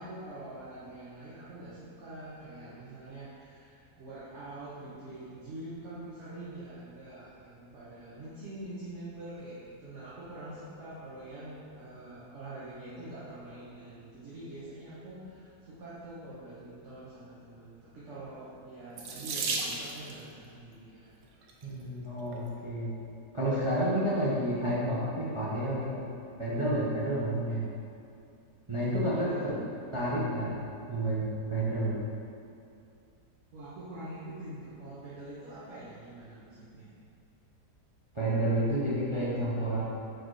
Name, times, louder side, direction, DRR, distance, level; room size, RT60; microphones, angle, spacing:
voice 1, 0.0-21.1 29.1-29.5 33.5-36.9, right 1 dB, 45° right, -10 dB, 1.2 m, -45 dB
Water tap faucet / Sink (filling or washing), 19.0-20.2 21.2-21.6 22.3-22.4 22.8-22.9, right 3 dB, 65° right, 1.0 m, -34 dB
voice 2, 21.6-22.9 23.3-26.0 26.4-27.6 28.7-29.5 29.9-31.2 31.5-32.0 38.1-39.8, right 1 dB, 25° right, -9 dB, 0.7 m, -30 dB
4.7 x 4.5 x 4.8 m, 2.6 s
omnidirectional pair, 1.9 m